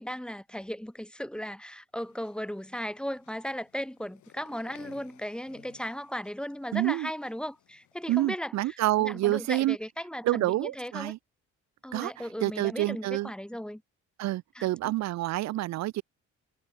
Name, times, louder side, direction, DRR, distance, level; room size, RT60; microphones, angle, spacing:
voice 1, 0.0-8.5 9.0-11.1 11.8-13.8 14.5-14.9, equal, 5° left, 1.3 m, -36 dB
sound 1, 2.0-8.1, left 14 dB, 80° left, 4.8 m, -58 dB
voice 2, 6.7-7.1 8.1-9.8 10.2-11.2 11.9-13.3 14.2-16.0, right 16 dB, 65° right, 0.5 m, -28 dB
cardioid pair, 90°, 29 cm